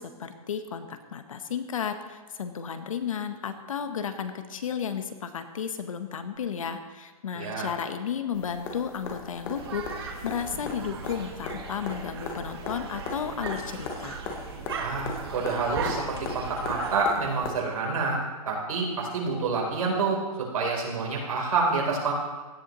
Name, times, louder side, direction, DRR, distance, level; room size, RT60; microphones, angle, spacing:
voice 1, 0.0-14.2, left 7 dB, 60° left, 8 dB, 1.1 m, -33 dB
voice 2, 7.4-7.7 14.8-22.1, right 4 dB, 65° right, -1 dB, 3.6 m, -28 dB
sound 1, 8.3-17.5 19.5-19.6, left 4 dB, 10° left, 0.5 m, -38 dB
sound 2, 9.6-17.0, right 5 dB, 40° right, 1.3 m, -38 dB
17.0 x 11.0 x 3.0 m, 1.3 s
hypercardioid pair, 175°, 19 cm